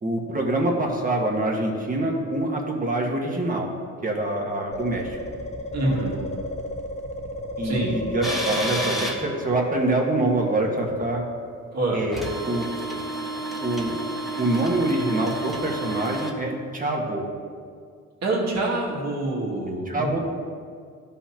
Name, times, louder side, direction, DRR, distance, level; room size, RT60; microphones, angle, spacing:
voice 1, 0.0-3.7 4.0-5.2 5.8-6.3 7.6-11.2 11.9-12.7 13.6-14.0 14.4-17.3 19.9-20.2, right 2 dB, 25° right, 0 dB, 1.5 m, -25 dB
sound 1, 4.7-10.9, left 1 dB, 20° left, 0.9 m, -33 dB
voice 2, 5.7-6.2 7.6-8.0 11.7-12.0 18.2-20.2, right 2 dB, 60° right, -4 dB, 2.2 m, -26 dB
sound 2, 8.2-9.2 12.1-16.4, right 1 dB, ahead, 1.4 m, -30 dB
13.0 x 5.6 x 2.9 m, 2.1 s
cardioid pair, 90°, 30 cm